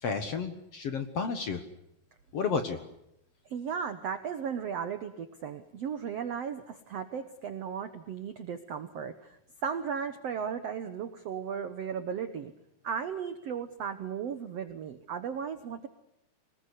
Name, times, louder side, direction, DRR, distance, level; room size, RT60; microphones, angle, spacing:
voice 1, 0.0-1.6 2.3-2.8, left 5 dB, 55° left, 8 dB, 1.9 m, -31 dB
voice 2, 3.4-12.5 12.8-15.9, right 7 dB, 90° right, 10 dB, 1.4 m, -36 dB
25.0 x 20.0 x 8.3 m, 0.82 s
omnidirectional pair, 4.7 m